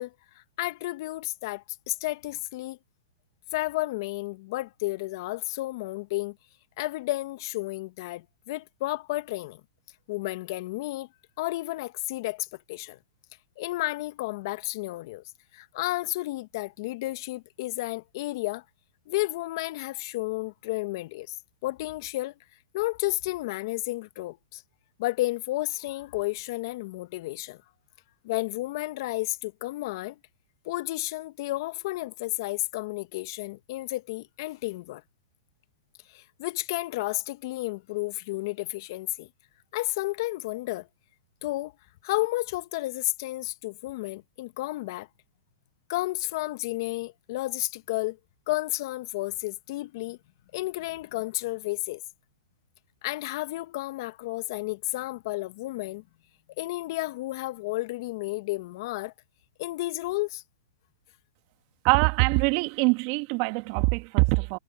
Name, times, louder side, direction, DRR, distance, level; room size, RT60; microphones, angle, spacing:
voice 1, 0.0-2.8 3.5-6.4 6.8-9.6 10.1-11.1 11.4-13.0 13.6-15.2 15.5-18.6 19.1-21.3 21.6-22.3 22.7-24.6 25.0-27.6 28.2-30.2 30.6-35.0 36.1-39.3 39.7-40.9 41.4-41.7 42.0-45.1 45.9-48.2 48.5-50.2 50.5-52.0 53.0-56.0 56.6-59.1 59.6-60.4, left 19 dB, 55° left, 1.3 m, -32 dB
voice 2, 61.8-64.6, right 27 dB, 45° right, 2.3 m, -23 dB
hypercardioid pair, 125°, 3 cm